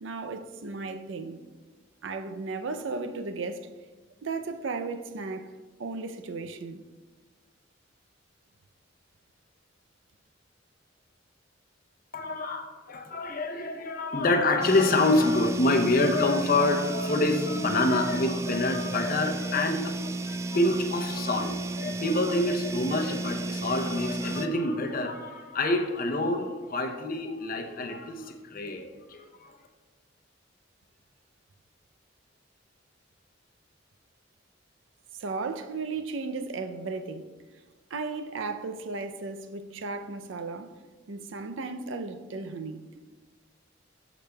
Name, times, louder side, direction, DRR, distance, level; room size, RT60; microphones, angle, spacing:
voice 1, 0.0-1.4 2.0-3.7 4.2-5.5 5.8-6.8 35.1-37.3 37.9-40.7 41.1-42.9, right 3 dB, 80° right, 0.5 m, -35 dB
voice 2, 12.1-29.6, left 2 dB, 50° left, 0.7 m, -27 dB
sound 1, 14.6-24.5, right 2 dB, 15° right, 0.3 m, -33 dB
13.5 x 5.0 x 2.3 m
head